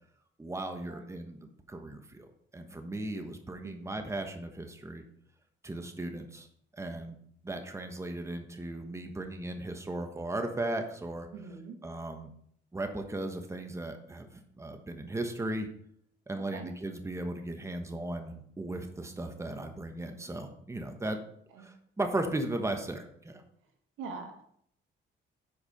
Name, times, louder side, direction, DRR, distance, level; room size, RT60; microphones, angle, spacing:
voice 1, 0.4-2.3 2.5-5.0 5.6-6.5 6.8-7.2 7.4-11.3 11.8-12.3 12.7-15.7 16.3-21.2 21.6-23.4, right 1 dB, 15° right, 6 dB, 1.2 m, -36 dB
voice 2, 11.3-11.8 16.3-16.7 21.5-21.7 24.0-24.4, right 5 dB, 90° right, 4 dB, 1.5 m, -43 dB
8.5 x 4.9 x 5.3 m, 0.67 s
cardioid pair, 90°, 20 cm